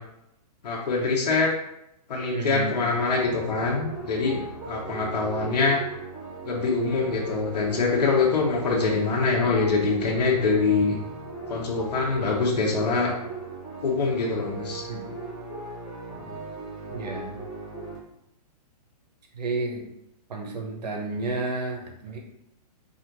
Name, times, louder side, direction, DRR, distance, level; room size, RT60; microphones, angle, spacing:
voice 1, 0.6-1.5 2.1-4.4 4.7-5.8 6.4-11.0 11.5-13.1 13.8-14.8, left 4 dB, 80° left, -2 dB, 1.3 m, -24 dB
voice 2, 2.3-2.8 4.2-4.5 14.9-15.0 16.9-17.4 19.3-19.9 20.3-22.2, right 3 dB, 90° right, 1 dB, 1.2 m, -31 dB
sound 1, 3.0-18.0, right 3 dB, ahead, 0.7 m, -38 dB
4.2 x 2.6 x 4.6 m, 0.82 s
hypercardioid pair, 180°, 21 cm